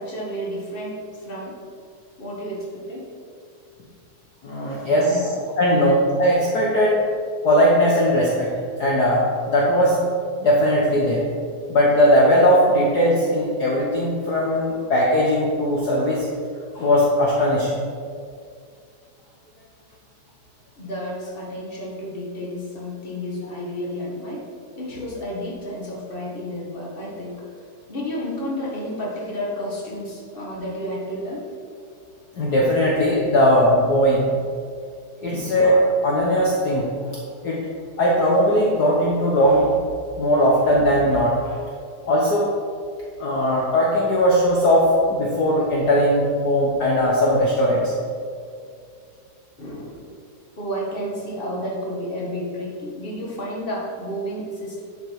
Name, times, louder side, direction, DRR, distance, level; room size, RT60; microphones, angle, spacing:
voice 1, 0.0-1.6 2.2-3.1 4.6-5.2 20.8-24.5 24.7-27.4 27.9-31.5 35.2-35.6 49.6-50.1 50.6-54.8, equal, 25° left, -4 dB, 1.2 m, -31 dB
voice 2, 4.4-5.3 5.6-7.0 7.4-8.5 8.8-10.0 10.4-11.2 11.7-16.3 16.7-17.8 32.3-34.3 35.2-36.9 37.4-37.6 38.0-39.7 40.2-41.5 42.1-42.5 43.2-47.9, equal, 65° left, -4 dB, 1.0 m, -19 dB
11.0 x 5.6 x 4.7 m, 2.3 s
omnidirectional pair, 3.3 m